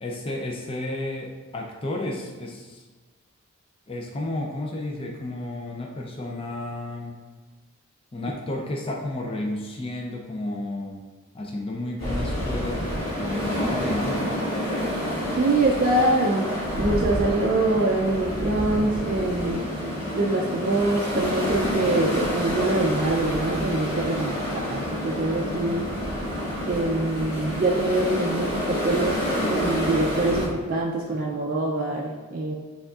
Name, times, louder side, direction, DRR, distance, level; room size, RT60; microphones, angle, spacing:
voice 1, 0.0-2.8 3.9-7.2 8.1-11.1 11.3-14.4, left 1 dB, 25° left, 0 dB, 0.4 m, -32 dB
sound 1, 12.0-30.5, equal, 50° left, 1.5 m, -28 dB
voice 2, 15.4-16.5 16.8-19.6 20.1-25.8 26.6-29.2 29.5-32.5, right 2 dB, 40° right, -2 dB, 0.4 m, -24 dB
6.3 x 3.5 x 2.4 m, 1.3 s
head